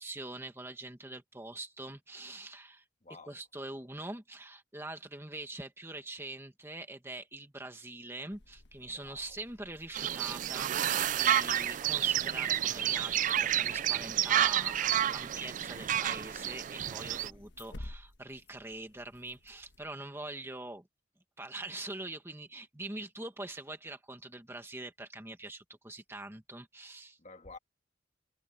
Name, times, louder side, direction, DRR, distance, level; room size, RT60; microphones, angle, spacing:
voice 1, 0.0-2.8 3.3-20.9 21.4-27.2, right 2 dB, 15° right, 1.7 m, -44 dB
voice 2, 3.0-3.4 8.8-9.4 17.2-17.5 27.2-27.6, left 3 dB, 40° left, 1.8 m, -52 dB
sound 1, 8.3-20.0, left 1 dB, 65° left, 1.4 m, -54 dB
sound 2, 9.9-17.3, right 11 dB, 40° right, 0.3 m, -30 dB
head